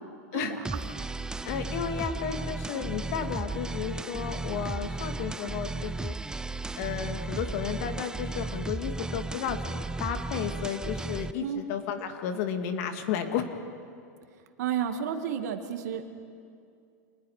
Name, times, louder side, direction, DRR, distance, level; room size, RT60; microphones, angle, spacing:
voice 1, 0.3-0.6 11.4-11.6 14.6-16.2, right 8 dB, 70° right, 6 dB, 1.9 m, -31 dB
sound 1, 0.6-11.3, right 3 dB, 10° right, 0.5 m, -35 dB
voice 2, 1.4-6.1 6.8-13.5, left 8 dB, 60° left, 6 dB, 2.3 m, -33 dB
27.5 x 20.0 x 5.0 m, 2.4 s
hypercardioid pair, 115°, 9 cm